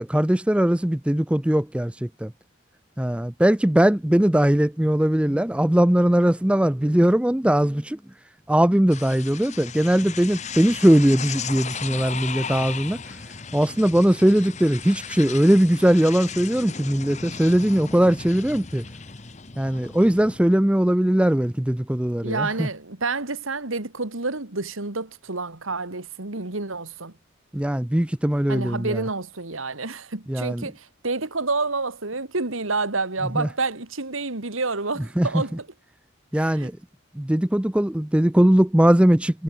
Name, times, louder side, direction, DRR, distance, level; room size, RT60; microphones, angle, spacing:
voice 1, 0.0-2.3 3.0-8.0 8.5-13.0 13.5-18.8 19.6-22.7 27.5-29.0 30.3-30.7 33.4-33.5 35.2-35.3 36.3-36.7 37.2-39.4, right 1 dB, 5° right, 0.4 m, -20 dB
sound 1, 8.9-20.4, left 6 dB, 35° left, 1.1 m, -36 dB
voice 2, 22.2-27.1 28.5-35.7 36.3-36.7, right 3 dB, 85° right, 2.4 m, -29 dB
head